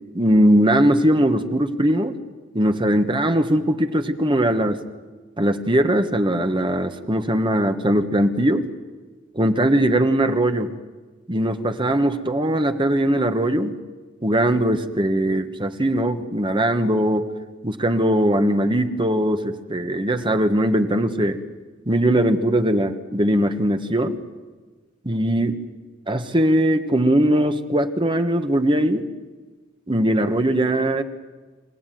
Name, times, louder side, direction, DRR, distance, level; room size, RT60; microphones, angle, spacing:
voice 1, 0.1-2.2 2.5-4.8 5.4-8.7 9.3-10.7 11.3-13.7 14.2-17.3 17.6-21.4 21.9-24.2 25.0-25.6 26.1-29.1 29.9-31.0, right 1 dB, 25° right, 7 dB, 1.4 m, -20 dB
26.5 x 17.0 x 9.3 m, 1.3 s
head